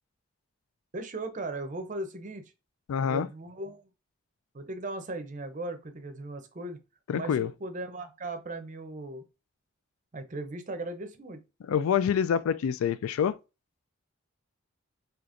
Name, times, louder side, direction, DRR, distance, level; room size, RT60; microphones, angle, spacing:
voice 1, 0.9-2.4 3.1-3.9 4.5-6.8 7.1-9.2 10.1-11.4, right 2 dB, 35° right, 0.6 m, -37 dB
voice 2, 2.9-3.3 7.1-7.5 11.7-13.4, left 7 dB, 80° left, 0.3 m, -26 dB
4.9 x 2.9 x 2.5 m
head